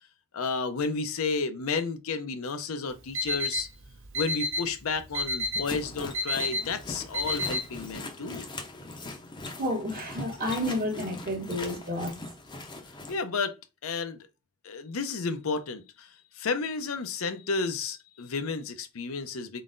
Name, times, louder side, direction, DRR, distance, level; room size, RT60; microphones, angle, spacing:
voice 1, 0.3-3.7 4.1-8.5 13.1-13.6 13.8-14.2 14.6-19.6, left 4 dB, 65° left, 0.6 m, -32 dB
Alarm, 2.9-7.9, left 2 dB, 60° right, 0.9 m, -32 dB
sound 1, 5.6-13.2, left 2 dB, 20° left, 0.6 m, -41 dB
voice 2, 9.6-12.3, left 1 dB, 45° right, 1.1 m, -31 dB
4.1 x 3.8 x 2.5 m
head